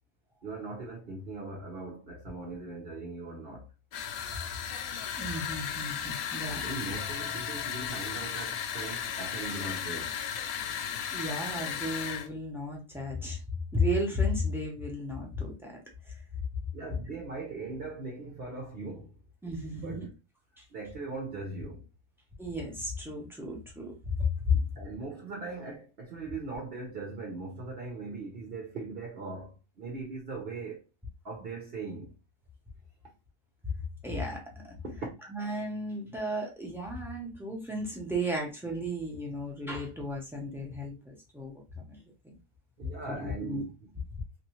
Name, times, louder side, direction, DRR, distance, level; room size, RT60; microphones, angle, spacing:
voice 1, 0.4-3.7 6.4-10.2 16.7-19.2 19.7-20.1 20.7-21.9 24.5-30.9 31.2-32.1 34.8-35.1 42.8-43.7, right 3 dB, 50° right, 0.8 m, -40 dB
sound 1, 3.9-12.3, left 8 dB, 70° left, 1.0 m, -35 dB
voice 2, 5.2-6.6 11.1-13.4 13.7-15.7 16.1-16.2 16.9-17.1 19.4-20.1 20.6-20.7 22.4-24.6 34.0-34.4 34.7-34.8 35.3-42.0 42.2-42.4 43.1-43.6, left 2 dB, 5° right, 0.3 m, -33 dB
3.1 x 2.6 x 3.0 m
omnidirectional pair, 1.7 m